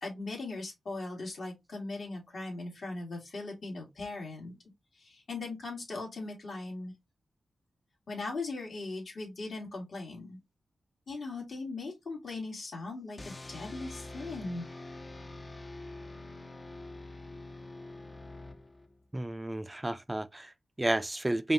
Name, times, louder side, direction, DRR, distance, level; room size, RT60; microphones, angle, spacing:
voice 1, 0.0-4.5 4.9-6.9 8.1-10.4 11.1-14.6, left 3 dB, 65° left, 2.2 m, -39 dB
sound 1, 13.2-19.0, left 2 dB, 35° left, 0.5 m, -45 dB
voice 2, 19.1-21.5, right 1 dB, 20° right, 0.4 m, -31 dB
5.0 x 2.4 x 2.8 m
cardioid pair, 60°, 0 cm